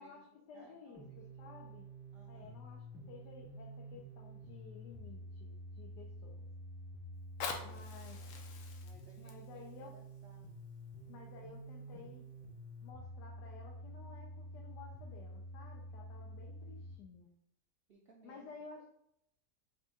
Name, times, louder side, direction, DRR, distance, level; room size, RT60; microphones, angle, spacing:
voice 1, 0.0-1.9 2.3-6.5 7.6-8.2 9.2-9.9 11.1-12.3 12.8-17.3 18.2-18.8, left 5 dB, 85° left, 0 dB, 1.3 m, -54 dB
voice 2, 0.5-1.2 1.4-1.6 2.1-2.6 7.4-7.9 8.8-10.5 16.8-16.9 17.9-18.5, right 2 dB, 70° right, -2 dB, 0.5 m, -62 dB
sound 1, 0.9-16.9, right 1 dB, 15° right, 0.4 m, -49 dB
Fire, 7.1-12.1 12.7-12.8, left 5 dB, 70° left, 1.1 m, -47 dB
5.2 x 2.4 x 3.8 m, 0.74 s
omnidirectional pair, 1.7 m